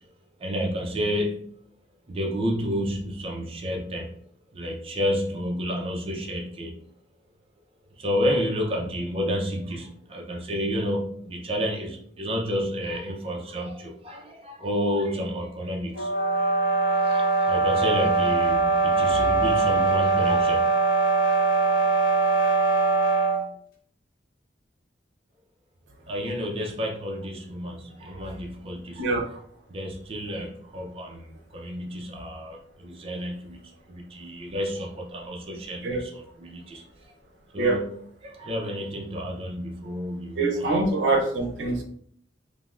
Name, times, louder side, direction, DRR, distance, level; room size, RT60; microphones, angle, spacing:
voice 1, 0.4-1.4 2.1-4.1 4.5-6.8 7.9-16.1 16.9-20.6 26.1-29.1 29.7-33.6 33.9-36.8 37.5-37.8 38.2-40.6, equal, 30° right, -1 dB, 0.4 m, -30 dB
sound 1, 15.9-23.5, right 3 dB, 55° left, 0.7 m, -22 dB
voice 2, 40.4-41.8, right 2 dB, 80° right, 1 dB, 0.6 m, -24 dB
3.3 x 2.1 x 2.3 m, 0.63 s
head